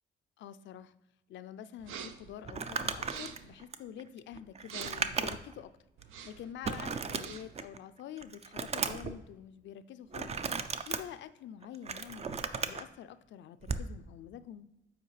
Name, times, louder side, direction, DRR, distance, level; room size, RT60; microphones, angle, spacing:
voice 1, 0.4-0.9 1.3-5.8 6.2-10.4 10.9-14.7, left 10 dB, 70° left, 13 dB, 0.4 m, -47 dB
sound 1, 1.8-2.3 3.0-3.5 4.6-5.2 6.0-6.5 7.0-7.6, right 7 dB, 85° right, 0.6 m, -45 dB
Crumpling crinkling, 2.4-5.6 6.0-6.1 6.6-7.8 8.2-9.1 10.1-11.0 11.6-12.8 13.6-13.9, right 5 dB, 35° right, 0.4 m, -35 dB
7.9 x 4.4 x 3.2 m, 0.90 s
cardioid pair, 90°, 20 cm